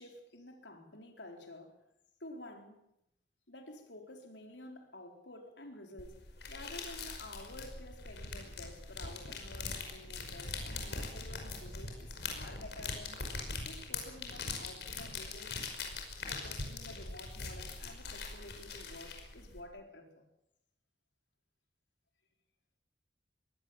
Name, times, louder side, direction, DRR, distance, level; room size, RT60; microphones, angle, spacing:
voice 1, 0.0-1.8 2.2-2.8 3.5-6.2 6.5-13.2 13.6-15.6 16.2-20.3, left 1 dB, 85° left, 4.5 m, -51 dB
sound 1, 6.0-19.6, left 4 dB, 70° left, 5.4 m, -42 dB
23.5 x 18.0 x 7.4 m
head